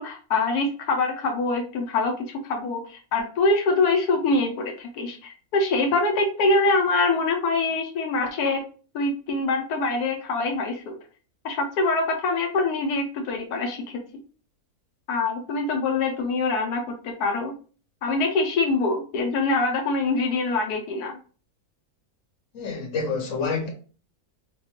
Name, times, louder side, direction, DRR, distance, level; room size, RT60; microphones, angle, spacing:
voice 1, 0.0-8.6 8.9-10.9 11.4-13.8 15.1-17.5 18.0-21.2, left 3 dB, 90° left, 1.2 m, -24 dB
voice 2, 22.5-23.7, left 4 dB, 60° left, 1.3 m, -28 dB
4.1 x 2.2 x 2.9 m
omnidirectional pair, 1.6 m